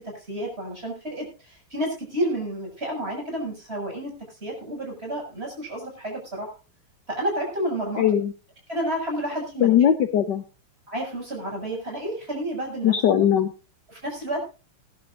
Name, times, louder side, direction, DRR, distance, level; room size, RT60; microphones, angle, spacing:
voice 1, 0.0-4.1 4.4-6.5 7.1-8.0 8.7-9.8 10.9-12.9 13.9-14.4, right 1 dB, 25° right, 0 dB, 7.3 m, -30 dB
voice 2, 8.0-8.3 9.6-10.4 12.8-13.5, left 9 dB, 60° left, 9 dB, 1.4 m, -19 dB
20.5 x 11.5 x 2.7 m, 0.33 s
omnidirectional pair, 2.4 m